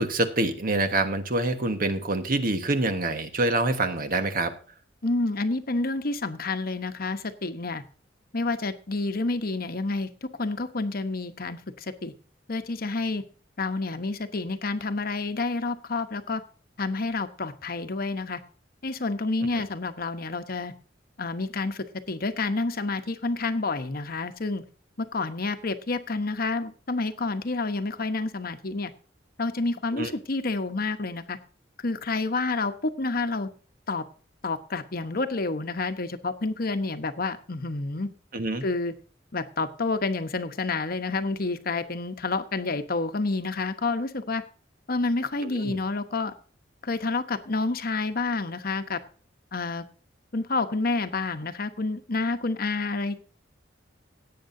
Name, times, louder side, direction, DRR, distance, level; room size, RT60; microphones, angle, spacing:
voice 1, 0.0-4.5 19.5-19.6 29.9-30.1 38.3-38.7 45.4-45.8, right 2 dB, 50° right, 8 dB, 1.4 m, -26 dB
voice 2, 5.0-7.8 8.3-12.1 12.5-13.2 13.6-16.4 16.8-18.4 18.8-20.7 21.2-24.6 25.0-28.9 29.4-31.4 31.8-33.5 33.9-34.0 34.4-38.1 38.6-38.9 39.3-44.4 44.9-46.3 46.8-49.0 49.5-49.8 50.3-53.2, left 3 dB, 55° left, 9 dB, 1.1 m, -29 dB
17.0 x 8.9 x 2.7 m, 0.38 s
head